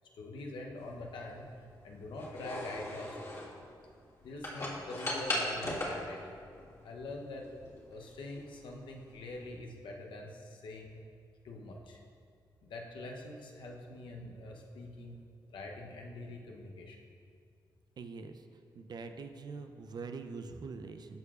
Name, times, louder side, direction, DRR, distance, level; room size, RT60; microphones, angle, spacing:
voice 1, 0.1-1.5 1.8-3.6 4.2-6.4 6.8-7.5 7.9-11.0 11.4-12.0 12.6-15.2 15.5-17.0, left 2 dB, 85° left, 1 dB, 0.8 m, -44 dB
sound 1, 0.8-9.5, left 1 dB, 35° left, 1.7 m, -40 dB
voice 2, 18.0-18.4 18.7-21.2, right 4 dB, 60° right, 7 dB, 0.5 m, -44 dB
13.0 x 4.6 x 2.4 m, 2.3 s
cardioid pair, 70°, 8 cm